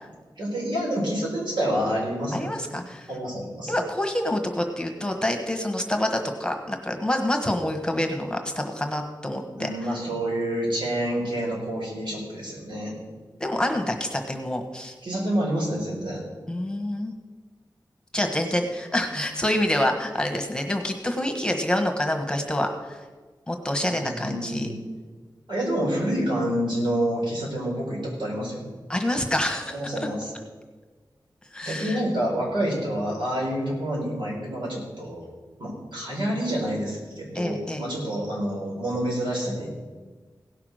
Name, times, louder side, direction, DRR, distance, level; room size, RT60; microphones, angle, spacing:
voice 1, 0.4-2.8 3.1-3.7 9.4-12.9 15.0-16.2 19.1-19.2 23.9-24.8 25.5-28.7 29.7-30.3 31.6-35.3 35.6-39.7, equal, 80° right, -4 dB, 4.7 m, -28 dB
voice 2, 2.3-3.1 3.7-9.9 13.4-14.9 16.5-17.1 18.1-23.0 23.5-24.7 28.9-30.1 31.5-32.0 37.3-37.8, left 1 dB, 10° left, 3 dB, 1.3 m, -27 dB
17.0 x 5.9 x 6.4 m, 1.4 s
wide cardioid pair, 95°, 8 cm